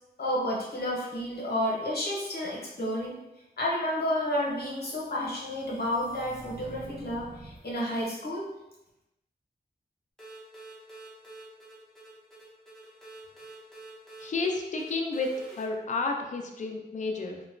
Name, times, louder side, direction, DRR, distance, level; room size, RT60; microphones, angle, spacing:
voice 1, 0.2-3.2 3.6-8.5, left 1 dB, 65° left, -4 dB, 0.8 m, -31 dB
sound 1, 4.1-7.9, right 2 dB, 90° right, 0.6 m, -49 dB
sound 2, 10.2-15.7, right 2 dB, 5° left, 0.7 m, -48 dB
voice 2, 14.2-15.3 15.6-17.4, left 3 dB, 45° left, 2 dB, 0.4 m, -31 dB
2.9 x 2.1 x 2.4 m, 0.93 s
wide cardioid pair, 100°, 17 cm